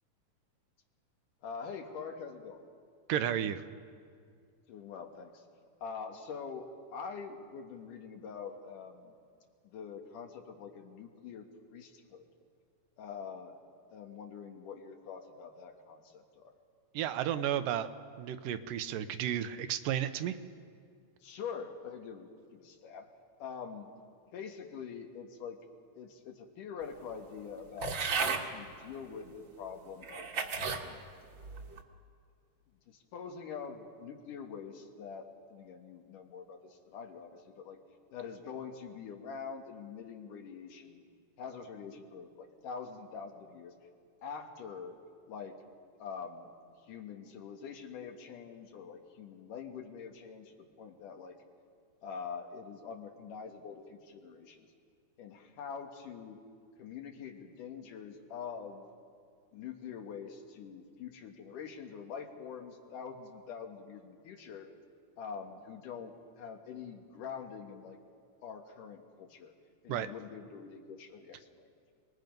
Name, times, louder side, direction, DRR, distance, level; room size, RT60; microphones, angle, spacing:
voice 1, 1.4-2.6 4.7-5.4 5.8-9.2 9.6-12.3 13.0-13.6 13.9-16.5 21.2-23.1 23.4-23.9 24.3-25.6 26.0-31.0 32.9-37.8 38.1-41.0 41.4-43.7 44.2-45.0 45.3-45.5 46.0-46.5 46.8-51.4 52.0-54.6 55.2-56.4 56.8-58.9 59.5-64.7 65.2-68.0 68.4-69.5 69.8-71.7, left 6 dB, 80° left, 3 dB, 3.1 m, -45 dB
voice 2, 3.1-3.6 16.9-17.9 18.2-20.4 69.9-70.1, right 10 dB, 90° right, 10 dB, 2.5 m, -32 dB
sound 1, 27.8-28.5 29.3-29.4 30.0-30.8 31.4-31.8, right 5 dB, 50° right, 1.5 m, -34 dB
28.5 x 20.0 x 5.3 m, 2.2 s
omnidirectional pair, 3.7 m